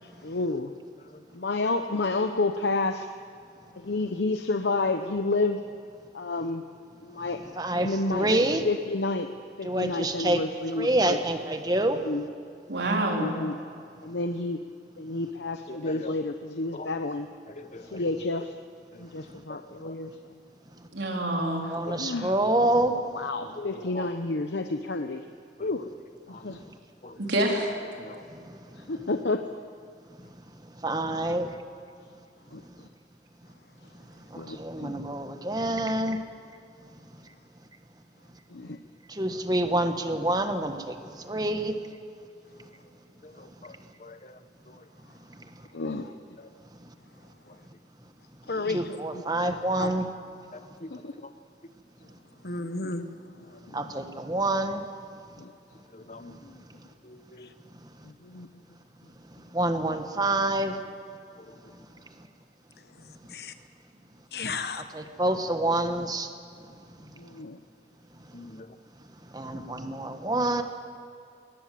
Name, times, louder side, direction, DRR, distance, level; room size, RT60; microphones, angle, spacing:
voice 1, 0.2-0.7 1.3-3.1 3.7-5.6 6.1-6.7 7.0-9.3 9.6-11.2 12.0-12.3 13.1-13.6 14.0-14.6 15.0-17.3 17.8-18.5 19.0-20.1 22.0-22.3 23.1-25.2 25.6-25.9 26.3-26.5 28.9-29.5 32.5-32.6 34.3-35.0 38.5-38.8 45.7-46.1 48.6-48.8 50.9-51.1 53.7-53.8 55.4-55.5 56.4-56.6 58.2-58.5 67.2-67.6, left 3 dB, 85° left, 7 dB, 0.9 m, -30 dB
voice 2, 7.6-8.6 9.6-10.4 10.7-12.0 21.7-23.0 28.3-28.8 30.2-30.3 30.8-31.5 34.3-36.2 39.1-41.8 45.3-45.5 46.8-46.9 48.7-50.1 53.7-54.8 59.5-60.8 64.8-66.3 69.3-70.6, right 1 dB, 25° right, 7 dB, 1.3 m, -27 dB
voice 3, 12.7-13.4 20.9-21.8 27.2-27.8, right 1 dB, 85° right, 0 dB, 3.9 m, -27 dB
voice 4, 15.7-16.1 16.7-16.9 17.7-18.0 19.5-19.6 19.8-19.9 21.9-22.0 23.6-23.7 23.9-24.1 25.6-25.7 28.0-28.2 43.6-43.7 44.0-44.2 50.8-50.9 55.9-56.3 57.1-57.5 68.3-68.7, left 2 dB, 40° left, 10 dB, 1.0 m, -41 dB
voice 5, 48.5-48.8 49.4-49.5 49.8-49.9 52.4-53.0 63.3-63.5 64.3-64.8, left 3 dB, 60° left, 9 dB, 1.3 m, -31 dB
20.5 x 18.5 x 7.6 m, 2.5 s
head